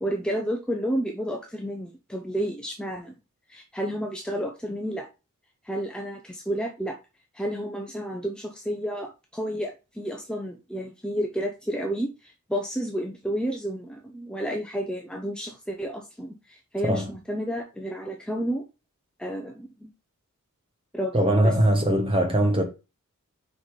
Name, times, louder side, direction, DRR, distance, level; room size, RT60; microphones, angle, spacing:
voice 1, 0.0-3.1 3.5-5.1 5.6-7.0 7.3-18.6 19.2-19.9 20.9-21.1 21.4-21.5, equal, 5° left, 0.6 m, -31 dB
voice 2, 21.1-22.6, right 1 dB, 25° right, 1.3 m, -21 dB
5.1 x 4.1 x 4.8 m
head